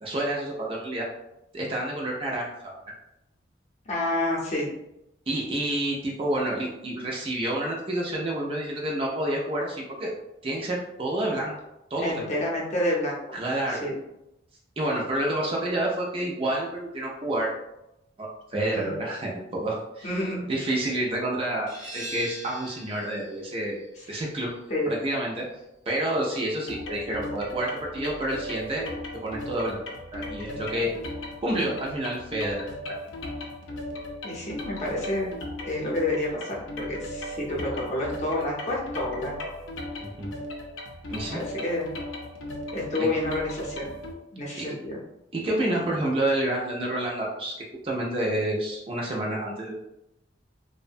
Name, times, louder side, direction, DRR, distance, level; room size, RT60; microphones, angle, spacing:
voice 1, 0.0-1.1 1.5-2.7 5.3-10.1 10.4-11.5 11.9-12.3 13.3-13.8 14.8-17.5 18.2-20.1 20.5-23.8 24.1-24.5 24.9-25.4 25.9-28.8 29.1-29.8 30.1-30.9 31.4-33.0 40.0-40.3 41.1-41.4 43.0-43.1 44.6-44.7 45.3-47.5 47.8-49.7, right 1 dB, 30° right, -3 dB, 0.4 m, -29 dB
voice 2, 3.9-4.7 12.0-13.2 13.7-13.9 18.7-18.9 20.0-20.4 24.7-24.9 34.2-35.3 35.7-39.4 41.3-41.9 42.7-43.9 44.3-45.0, left 1 dB, 35° left, -4 dB, 0.6 m, -29 dB
sound 1, 21.7-27.1, right 1 dB, 70° right, 0.8 m, -44 dB
sound 2, 26.7-44.1, left 1 dB, 85° left, 0.5 m, -37 dB
2.6 x 2.1 x 2.5 m, 0.87 s
head